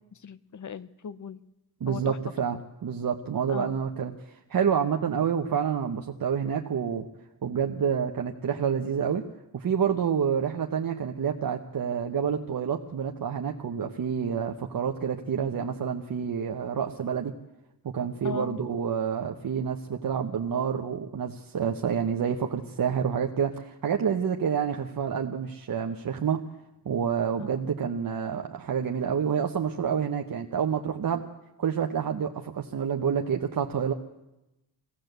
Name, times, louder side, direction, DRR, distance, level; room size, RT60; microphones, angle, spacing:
voice 1, 0.2-1.4 1.9-2.2 3.5-3.8 18.2-18.6 27.4-27.5, left 7 dB, 45° left, 16 dB, 0.7 m, -37 dB
voice 2, 1.8-7.1 7.4-9.2 9.5-17.3 17.8-26.4 26.8-31.2 31.6-33.9, right 7 dB, 55° right, 3 dB, 1.0 m, -28 dB
22.5 x 16.0 x 7.9 m, 0.97 s
wide cardioid pair, 170°, 40 cm